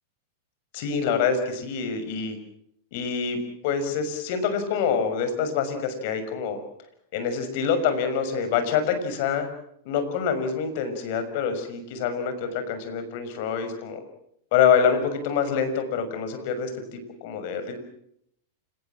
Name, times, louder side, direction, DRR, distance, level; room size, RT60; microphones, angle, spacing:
voice 1, 0.7-2.4 2.9-6.6 7.1-9.5 9.8-14.0 14.5-17.8, left 6 dB, 55° left, 9 dB, 6.4 m, -26 dB
29.0 x 18.5 x 7.5 m, 0.74 s
hypercardioid pair, 105°, 0 cm